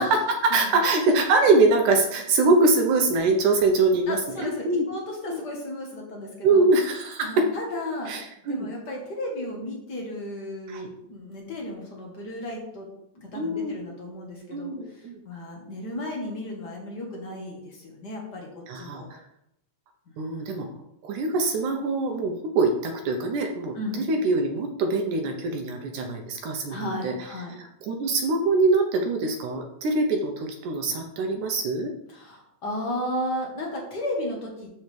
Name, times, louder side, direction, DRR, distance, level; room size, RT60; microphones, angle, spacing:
voice 1, 0.0-4.9 5.3-5.4 6.4-7.4 8.1-8.7 10.7-10.9 13.3-13.8 14.5-15.2 18.7-19.2 20.2-20.7 21.0-27.1 27.6-31.9, right 3 dB, 75° right, 4 dB, 2.2 m, -23 dB
voice 2, 4.1-6.7 7.2-8.1 8.4-12.9 13.1-18.5 18.7-19.1 20.1-20.8 23.7-24.1 26.7-27.5 32.1-34.7, left 1 dB, 55° left, -1 dB, 1.1 m, -34 dB
12.5 x 4.8 x 3.3 m, 0.79 s
omnidirectional pair, 4.0 m